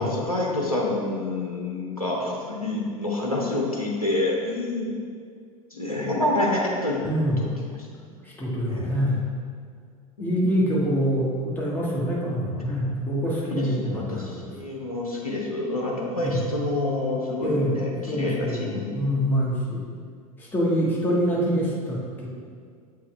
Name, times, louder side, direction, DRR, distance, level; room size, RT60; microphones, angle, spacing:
voice 1, 0.0-4.9 5.7-7.0 7.4-7.5 8.7-8.9 10.2-10.3 13.5-19.1, left 2 dB, 85° left, -3 dB, 0.8 m, -27 dB
voice 2, 7.0-7.5 8.2-9.3 10.2-14.5 16.2-16.5 17.4-17.8 18.1-19.9 20.4-22.3, equal, 10° left, -5 dB, 1.4 m, -25 dB
7.4 x 4.7 x 3.1 m, 2.1 s
figure-of-eight pair, 80°, 18 cm